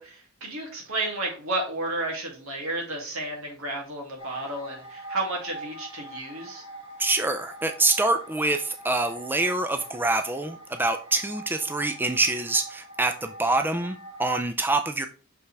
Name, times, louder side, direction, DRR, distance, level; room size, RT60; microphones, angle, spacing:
voice 1, 0.0-6.6, right 2 dB, 85° right, 0 dB, 2.6 m, -32 dB
sound 1, 4.2-14.4, right 1 dB, 25° right, 2.4 m, -44 dB
voice 2, 7.0-15.1, right 2 dB, 10° right, 7 dB, 0.4 m, -25 dB
6.1 x 5.5 x 3.4 m, 0.36 s
head